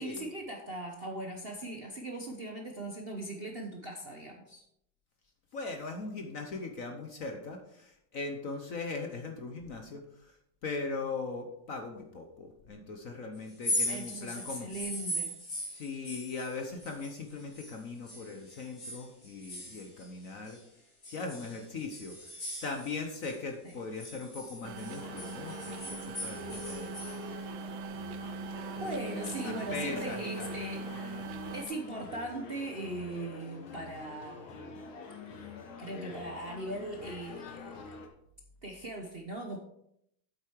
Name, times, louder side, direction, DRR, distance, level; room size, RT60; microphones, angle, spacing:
voice 1, 0.0-4.6 13.9-15.3 28.8-30.8 31.5-34.8 35.4-37.7 38.6-39.6, right 2 dB, 40° right, 1 dB, 0.9 m, -39 dB
voice 2, 5.5-14.7 15.7-20.6 21.1-22.3 22.6-26.9 28.8-30.5, left 3 dB, 50° left, 4 dB, 1.1 m, -40 dB
sound 1, 13.5-17.8 18.1-20.6 21.0-23.4 23.7-27.2, left 1 dB, 35° left, 2.9 m, -39 dB
sound 2, 24.6-31.6, right 4 dB, 80° right, 1.5 m, -41 dB
sound 3, 24.9-38.1, left 5 dB, 80° left, 2.1 m, -46 dB
8.5 x 8.1 x 4.6 m, 0.76 s
omnidirectional pair, 2.2 m